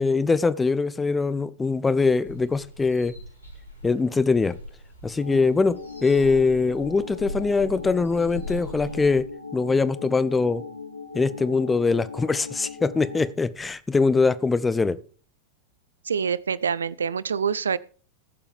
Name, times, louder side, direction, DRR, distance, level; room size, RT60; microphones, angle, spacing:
voice 1, 0.0-3.1 3.8-4.5 5.0-9.3 9.5-10.6 11.1-15.0, left 4 dB, 10° left, 0.7 m, -22 dB
sound 1, 2.2-9.2, left 1 dB, 90° left, 3.6 m, -41 dB
sound 2, 5.2-13.3, left 4 dB, 90° right, 1.4 m, -39 dB
voice 2, 16.1-17.8, right 6 dB, 70° right, 0.5 m, -26 dB
19.5 x 7.0 x 3.5 m
figure-of-eight pair, 90°, 0 cm